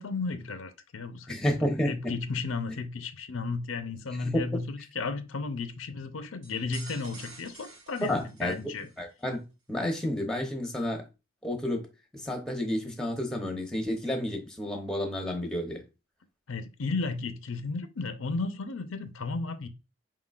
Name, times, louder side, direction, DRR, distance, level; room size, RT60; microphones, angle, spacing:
voice 1, 0.0-8.9 16.5-19.7, left 4 dB, 80° left, 0.6 m, -34 dB
voice 2, 1.3-1.9 4.2-4.4 8.1-8.5 9.0-11.0 11.4-11.9 12.2-15.8, left 1 dB, 5° left, 0.8 m, -30 dB
sound 1, 6.4-9.0, right 3 dB, 60° right, 1.3 m, -48 dB
4.7 x 3.7 x 2.4 m
head